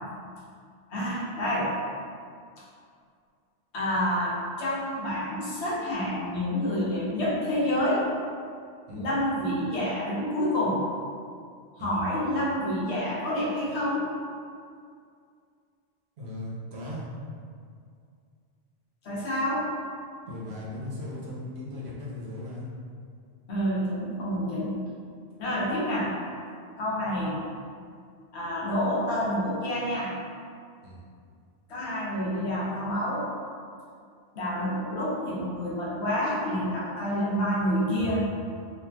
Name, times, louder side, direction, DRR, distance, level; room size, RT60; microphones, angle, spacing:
voice 1, 0.9-1.7 3.7-8.0 8.9-10.8 11.8-14.1 19.0-19.7 23.5-24.8 25.4-26.1 26.8-27.4 28.3-30.1 31.7-33.3 34.3-38.3, equal, 75° left, -6 dB, 1.0 m, -28 dB
voice 2, 16.2-17.0 20.3-22.7 30.8-31.0, left 1 dB, 70° right, -7 dB, 0.9 m, -37 dB
3.0 x 2.5 x 2.2 m, 2.2 s
omnidirectional pair, 1.2 m